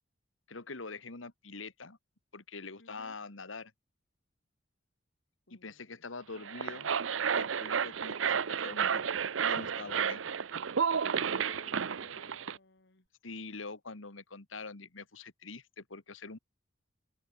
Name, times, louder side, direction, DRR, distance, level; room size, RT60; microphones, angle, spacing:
voice 1, 0.5-2.0 2.3-3.7 5.5-6.9 7.3-9.1 9.4-10.2 13.2-16.4, left 3 dB, 90° left, 1.9 m, -44 dB
voice 2, 2.8-3.2 5.5-6.1 11.1-13.1, left 2 dB, 65° left, 2.6 m, -57 dB
sound 1, 6.4-12.6, right 7 dB, 80° right, 0.7 m, -32 dB
head